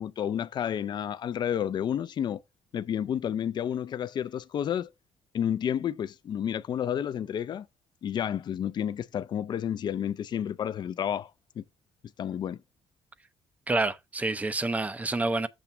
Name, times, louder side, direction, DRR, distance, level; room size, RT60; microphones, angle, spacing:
voice 1, 0.0-2.4 2.7-4.9 5.3-7.7 8.0-11.3 11.6-11.7 12.2-12.6, left 9 dB, 45° left, 0.4 m, -30 dB
voice 2, 13.7-15.5, right 2 dB, 15° right, 0.5 m, -28 dB
7.1 x 3.2 x 5.9 m
cardioid pair, 155°, 10 cm